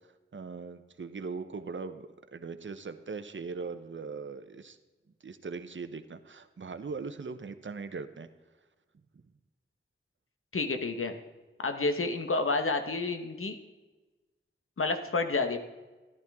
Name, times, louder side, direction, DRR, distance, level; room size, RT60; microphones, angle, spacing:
voice 1, 0.0-4.8 5.2-8.3, right 4 dB, 65° right, 9 dB, 0.8 m, -40 dB
voice 2, 10.5-11.1 11.6-13.6 14.8-15.6, left 3 dB, 85° left, 7 dB, 1.2 m, -29 dB
13.5 x 12.0 x 3.6 m, 1.2 s
wide cardioid pair, 55°, 21 cm